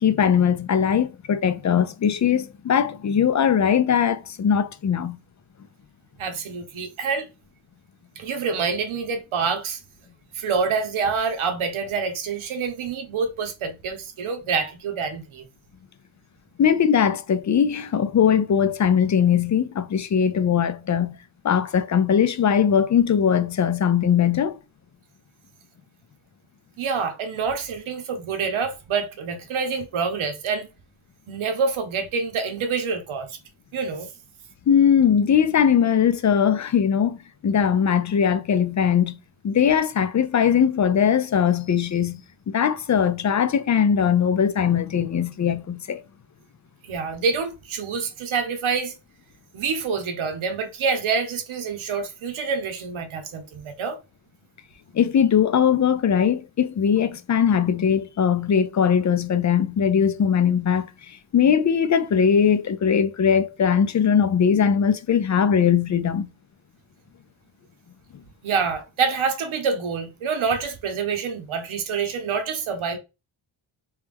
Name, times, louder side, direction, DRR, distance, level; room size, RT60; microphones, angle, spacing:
voice 1, 0.0-5.2 16.6-21.2 21.4-24.6 34.7-39.2 39.4-42.2 42.5-46.0 54.9-60.9 61.3-66.3, left 8 dB, 40° left, 0.5 m, -20 dB
voice 2, 6.2-7.3 8.2-9.8 10.3-15.4 26.8-30.7 31.3-33.4 33.7-34.1 46.8-48.9 49.5-54.0 68.4-73.0, right 5 dB, 80° right, 0.9 m, -27 dB
3.2 x 3.0 x 3.4 m
cardioid pair, 95°, 48 cm